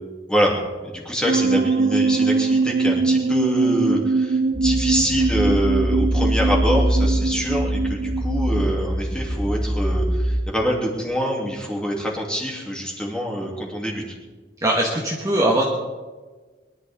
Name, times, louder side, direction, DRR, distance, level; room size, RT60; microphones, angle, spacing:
voice 1, 0.8-14.2, equal, 5° left, -2 dB, 2.9 m, -25 dB
sound 1, 1.3-8.7, right 3 dB, 50° right, 0.5 m, -22 dB
sound 2, 4.5-10.4, equal, 35° right, 2.7 m, -23 dB
voice 2, 14.6-15.7, right 1 dB, 20° right, -3 dB, 1.6 m, -20 dB
23.0 x 11.5 x 3.7 m, 1.3 s
head